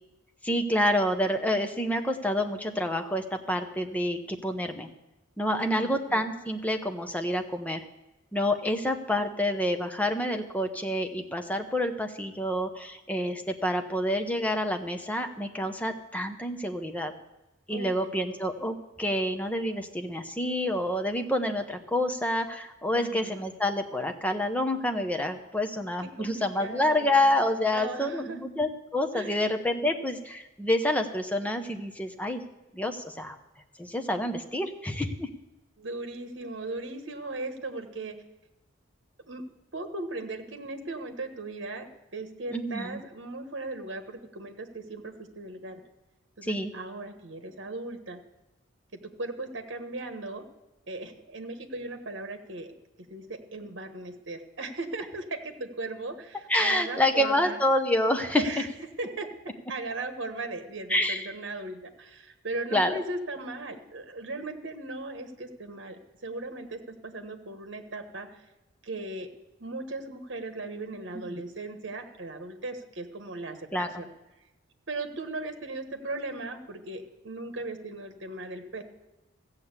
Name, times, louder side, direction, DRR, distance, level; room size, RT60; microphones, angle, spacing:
voice 1, 0.4-4.9 5.4-7.8 8.3-17.1 17.7-32.4 32.7-33.4 33.8-35.3 42.5-43.0 46.4-46.7 56.5-58.6 60.9-61.3 62.7-63.0 73.7-74.0, left 1 dB, 5° left, 5 dB, 0.9 m, -28 dB
voice 2, 5.5-6.2 17.7-18.3 22.9-23.5 26.0-27.2 27.7-28.4 29.1-29.5 35.8-38.2 39.2-45.8 46.4-48.2 48.9-50.4 50.9-52.7 53.1-57.6 58.3-58.7 59.0-68.4 68.8-69.3 69.6-74.1 74.9-78.8, right 2 dB, 60° right, 6 dB, 1.2 m, -38 dB
14.5 x 7.2 x 8.2 m, 1.0 s
head